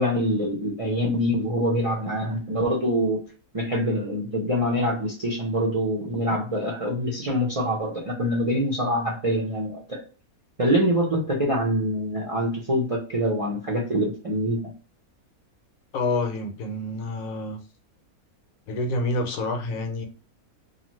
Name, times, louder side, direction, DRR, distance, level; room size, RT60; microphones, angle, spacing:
voice 1, 0.0-3.2 3.5-10.0 10.6-14.7, equal, 45° right, 0.4 m, -25 dB
voice 2, 15.9-17.6 18.7-20.1, left 2 dB, 75° left, 1.0 m, -28 dB
2.6 x 2.4 x 3.0 m
omnidirectional pair, 1.5 m